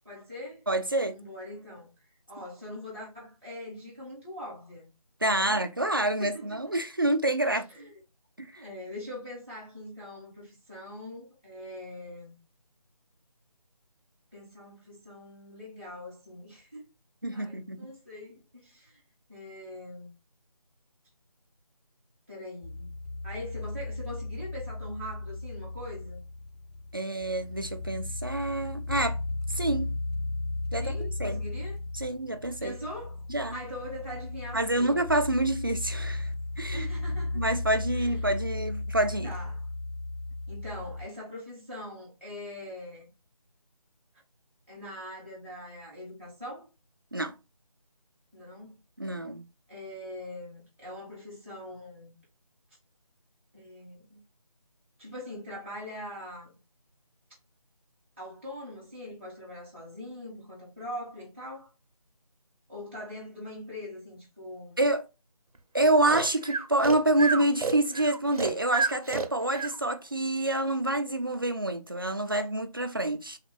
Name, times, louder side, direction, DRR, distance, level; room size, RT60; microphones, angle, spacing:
voice 1, 0.1-0.6 1.1-1.9 2.3-4.9 5.3-5.6 6.2-6.6 7.4-7.9 8.6-12.4 14.3-16.8 17.3-19.0 19.3-20.1 22.3-22.9 23.2-26.2 30.8-31.8 32.6-33.2 33.5-35.0 36.7-37.4 37.9-38.3 39.2-39.6 40.5-43.1 44.7-46.7 48.3-48.7 49.7-52.1 53.5-54.2 55.0-56.6 58.2-61.7 62.7-64.8, left 1 dB, 5° left, 1.0 m, -42 dB
voice 2, 0.7-1.2 5.2-7.7 8.4-8.5 17.2-17.8 26.9-29.2 29.5-29.9 30.7-31.4 31.9-32.7 33.3-33.6 34.5-36.3 36.6-36.9 37.3-39.3 47.1-47.3 49.0-49.4 64.8-65.0 65.7-73.4, right 1 dB, 35° right, 0.4 m, -27 dB
sound 1, 22.6-41.1, left 2 dB, 85° left, 0.6 m, -35 dB
Breathing, 66.1-69.8, right 4 dB, 75° right, 0.7 m, -30 dB
3.4 x 2.4 x 3.8 m
figure-of-eight pair, 170°, 20 cm